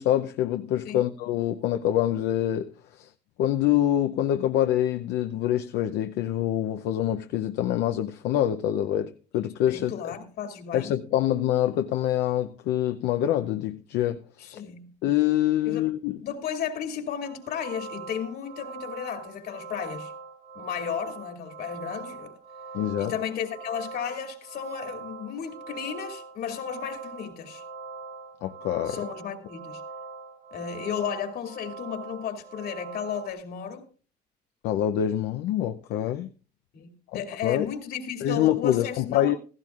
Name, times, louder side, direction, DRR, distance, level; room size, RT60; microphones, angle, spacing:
voice 1, 0.0-2.7 3.0-3.1 3.4-9.9 10.7-14.6 15.0-16.2 22.7-23.1 28.4-29.0 34.6-36.3 37.1-37.7 38.2-39.4, left 12 dB, 85° left, 0.6 m, -25 dB
voice 2, 9.7-10.9 14.4-14.9 15.7-15.9 16.2-20.1 20.5-22.3 23.0-27.6 28.8-29.8 30.5-33.9 36.7-39.3, left 8 dB, 65° left, 2.5 m, -34 dB
sound 1, 17.2-33.3, right 4 dB, 70° right, 4.3 m, -42 dB
16.0 x 15.0 x 2.4 m
cardioid pair, 110°, 17 cm